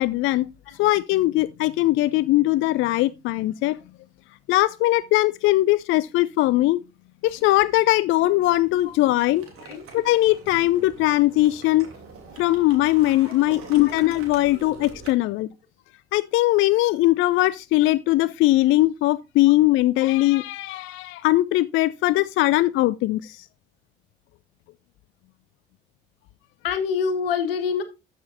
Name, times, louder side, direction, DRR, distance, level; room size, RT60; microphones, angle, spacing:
voice 1, 0.0-0.5 0.8-3.8 4.5-6.8 7.2-9.5 9.9-11.9 12.4-15.5 16.1-23.5, left 17 dB, 45° left, 0.4 m, -20 dB
sound 1, 7.3-7.7 8.1-15.1, right 4 dB, 50° right, 3.1 m, -44 dB
voice 2, 26.6-27.8, left 6 dB, 75° left, 1.6 m, -26 dB
13.0 x 6.0 x 2.6 m
figure-of-eight pair, 55°, 29 cm